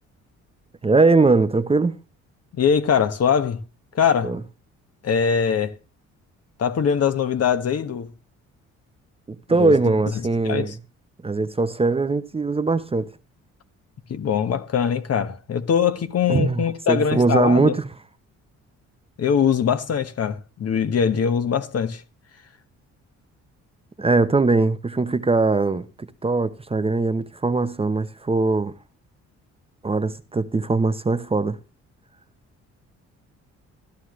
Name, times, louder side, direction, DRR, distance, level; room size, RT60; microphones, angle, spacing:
voice 1, 0.8-2.0 4.2-4.4 9.3-10.7 11.2-13.1 16.3-17.9 24.0-28.7 29.8-31.6, right 3 dB, 20° right, 0.8 m, -21 dB
voice 2, 2.6-3.6 3.9-4.3 5.0-5.7 6.6-8.1 9.5-9.8 10.4-10.7 14.1-17.8 19.2-22.0, left 7 dB, 55° left, 1.4 m, -22 dB
14.5 x 11.5 x 3.2 m
cardioid pair, 90°, 30 cm